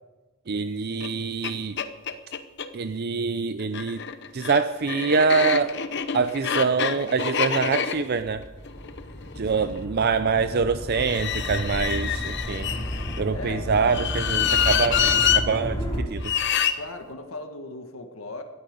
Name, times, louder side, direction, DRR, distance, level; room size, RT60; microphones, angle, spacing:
voice 1, 0.5-1.8 2.7-4.0 4.3-5.8 6.1-8.4 9.4-12.7 13.2-16.2, right 5 dB, 50° right, 11 dB, 0.5 m, -25 dB
sound 1, 1.0-1.1 1.4-1.5 1.8-2.7 3.6-9.8 10.9-13.2 13.8-15.4 16.2-16.7, left 8 dB, 55° left, 0.9 m, -26 dB
sound 2, 8.2-16.0, equal, 15° left, 4.2 m, -33 dB
voice 2, 12.5-12.9 13.3-14.1 16.7-18.4, left 2 dB, 80° left, 5 dB, 1.6 m, -39 dB
18.0 x 12.5 x 5.3 m, 1.2 s
head